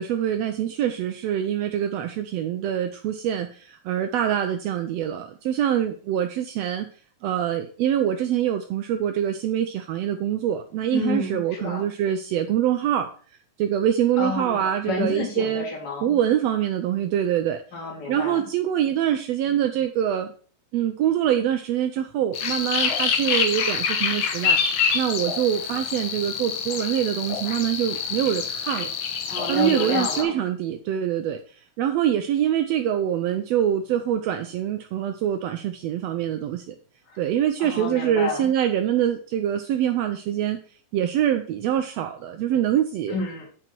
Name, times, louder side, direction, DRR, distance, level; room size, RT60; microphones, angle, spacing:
voice 1, 0.0-6.9 7.2-13.1 13.6-15.6 16.0-17.6 18.1-20.3 20.7-28.9 29.5-36.7 37.2-40.6 40.9-43.2, right 10 dB, 80° right, 7 dB, 1.5 m, -24 dB
voice 2, 10.9-11.9 14.2-16.1 17.7-18.4 29.3-30.4 37.1-37.2 37.6-38.5 43.1-43.4, left 3 dB, 35° left, -2 dB, 2.7 m, -30 dB
sound 1, 22.3-30.2, left 6 dB, 60° left, 1.4 m, -26 dB
7.9 x 6.1 x 4.5 m, 0.43 s
omnidirectional pair, 3.5 m